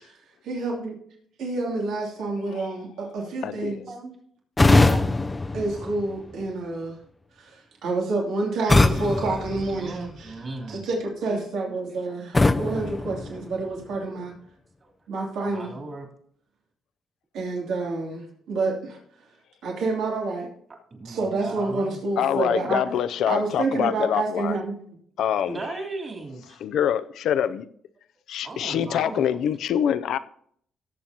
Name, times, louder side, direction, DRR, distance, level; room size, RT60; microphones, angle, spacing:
voice 1, 0.4-1.0 1.4-3.8 4.7-5.2 5.5-7.0 7.4-10.3 10.7-14.3 15.1-15.7 17.3-19.0 19.6-20.5 21.0-22.8 23.3-24.8, right 3 dB, 80° right, 2.8 m, -28 dB
voice 2, 3.4-3.9 22.2-24.6 25.2-25.6 26.6-27.6 28.3-30.2, left 9 dB, 75° left, 0.5 m, -25 dB
sound 1, 4.6-6.5 8.7-10.4 12.3-14.0, left 2 dB, 20° left, 0.5 m, -22 dB
voice 3, 9.7-10.9 14.8-14.9 15.5-16.1 20.9-22.0 25.5-26.6 28.4-29.4, right 3 dB, 35° right, 3.3 m, -37 dB
18.0 x 7.5 x 2.9 m
cardioid pair, 90°, 0 cm